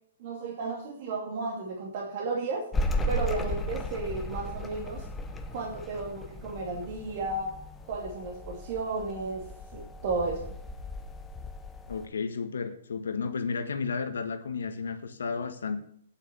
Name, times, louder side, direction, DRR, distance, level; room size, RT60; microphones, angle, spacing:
voice 1, 0.2-2.7 3.1-5.1 5.5-7.6 7.9-9.4 9.7-10.5, right 3 dB, 50° right, -1 dB, 2.5 m, -33 dB
sound 1, 2.7-12.1, equal, 10° left, 1.1 m, -35 dB
voice 2, 11.9-15.8, left 5 dB, 75° left, 9 dB, 1.5 m, -32 dB
9.2 x 7.4 x 7.0 m, 0.63 s
figure-of-eight pair, 120°, 0 cm